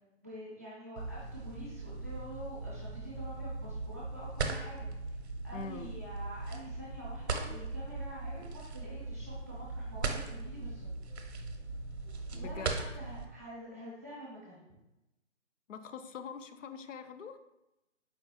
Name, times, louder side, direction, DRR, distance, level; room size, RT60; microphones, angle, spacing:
voice 1, 0.2-5.2 5.4-10.9 12.3-14.7, equal, 15° right, -8 dB, 0.5 m, -47 dB
sound 1, 1.0-13.3, right 3 dB, 60° right, 0.7 m, -39 dB
voice 2, 5.5-5.9 12.3-12.8 15.7-17.4, left 6 dB, 80° left, 9 dB, 0.5 m, -44 dB
4.6 x 2.3 x 4.1 m, 0.96 s
hypercardioid pair, 155°, 37 cm